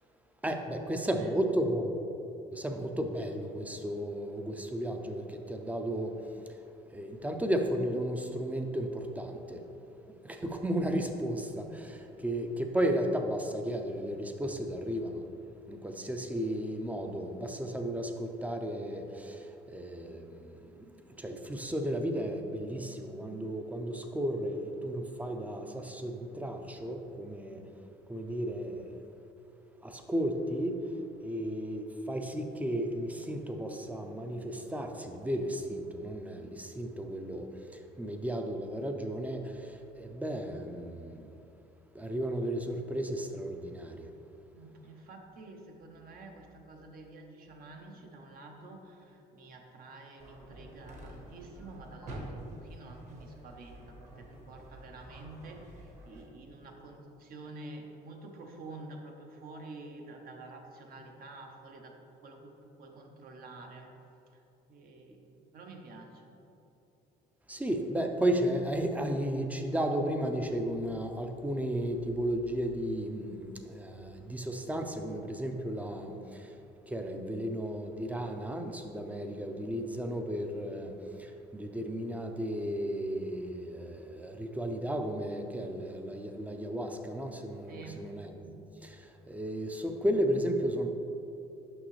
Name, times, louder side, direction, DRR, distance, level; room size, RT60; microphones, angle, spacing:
voice 1, 0.4-2.0 2.5-6.1 6.9-9.6 10.2-15.2 15.7-27.6 28.1-29.0 29.8-30.8 31.2-41.3 41.9-44.1 67.5-76.5 76.9-80.9 81.2-90.9, right 1 dB, 10° right, 4 dB, 0.5 m, -34 dB
voice 2, 44.5-62.0 62.2-63.9 64.3-64.4 64.7-66.4 87.7-88.1, right 2 dB, 60° right, 2 dB, 0.9 m, -49 dB
sound 1, 50.2-56.2, right 1 dB, 45° right, 1.3 m, -48 dB
6.3 x 5.5 x 3.2 m, 2.8 s
cardioid pair, 110°, 17 cm